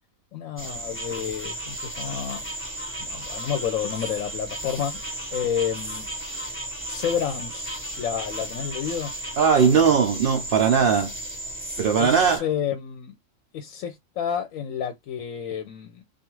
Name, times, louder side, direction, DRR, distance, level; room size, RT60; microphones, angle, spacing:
voice 1, 0.3-2.5 3.0-6.0 6.3-6.5 6.9-7.7 8.0-9.1 12.0-13.1 13.5-16.0, left 8 dB, 75° left, 1.0 m, -30 dB
sound 1, 0.6-12.4, right 1 dB, 10° left, 0.9 m, -34 dB
voice 2, 9.4-11.1 11.8-12.4, right 6 dB, 65° right, 0.5 m, -19 dB
2.4 x 2.4 x 3.0 m
omnidirectional pair, 1.5 m